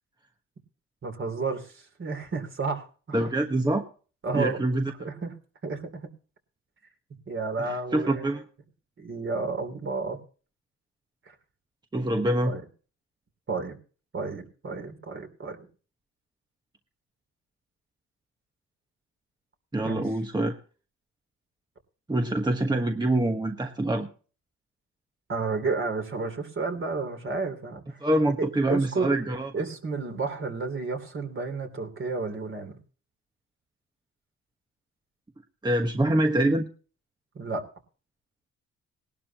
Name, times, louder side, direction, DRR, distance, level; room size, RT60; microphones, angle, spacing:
voice 1, 1.0-3.3 4.2-4.6 5.0-5.3 5.6-6.1 7.3-8.3 9.0-10.2 12.4-12.6 13.5-13.8 14.1-15.7 19.8-20.0 25.3-28.0 28.4-29.2 29.5-32.8 37.3-37.6, right 4 dB, 40° right, 6 dB, 3.1 m, -31 dB
voice 2, 3.1-3.8 4.3-4.9 7.6-8.4 11.9-12.5 19.7-20.6 22.1-24.1 28.0-29.5 35.6-36.7, right 1 dB, 15° right, 5 dB, 1.2 m, -25 dB
19.0 x 12.0 x 2.9 m, 0.38 s
cardioid pair, 90°, 30 cm